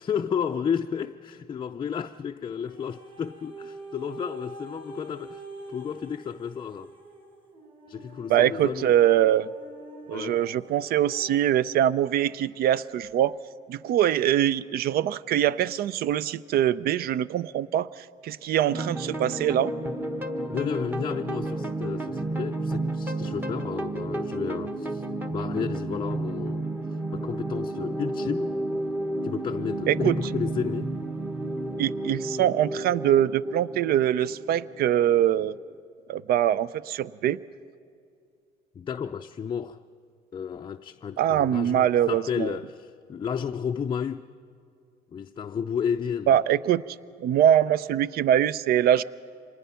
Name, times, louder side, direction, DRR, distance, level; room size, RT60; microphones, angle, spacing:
voice 1, 0.0-6.9 7.9-8.9 10.1-10.4 20.5-25.0 25.3-26.7 27.1-28.6 29.2-30.9 38.8-39.8 40.3-44.3 45.1-46.4, left 7 dB, 30° left, 0.4 m, -32 dB
sound 1, 2.7-11.8 12.4-12.5, right 2 dB, 30° right, 4.7 m, -45 dB
voice 2, 8.3-9.5 10.1-13.4 13.7-19.7 29.9-30.1 31.8-35.6 36.1-37.4 41.2-42.5 46.3-46.8 47.2-49.0, right 11 dB, 65° right, 0.5 m, -23 dB
sound 2, 18.7-35.6, right 2 dB, 10° right, 1.2 m, -32 dB
25.5 x 19.5 x 5.7 m
cardioid pair, 110°, 17 cm